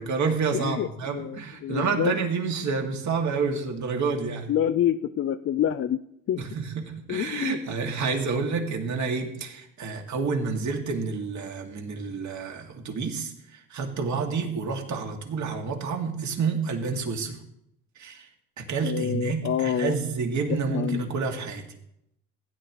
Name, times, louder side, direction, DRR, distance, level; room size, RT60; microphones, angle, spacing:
voice 1, 0.0-4.5 6.4-17.4 18.0-18.3 18.6-21.6, right 5 dB, 45° right, 2 dB, 2.3 m, -29 dB
voice 2, 0.5-2.1 4.5-6.0 6.3-6.4 7.1-7.6 18.8-19.9 20.7-21.0, left 10 dB, 35° left, 10 dB, 0.5 m, -27 dB
16.5 x 9.5 x 3.1 m, 0.77 s
supercardioid pair, 85°, 40 cm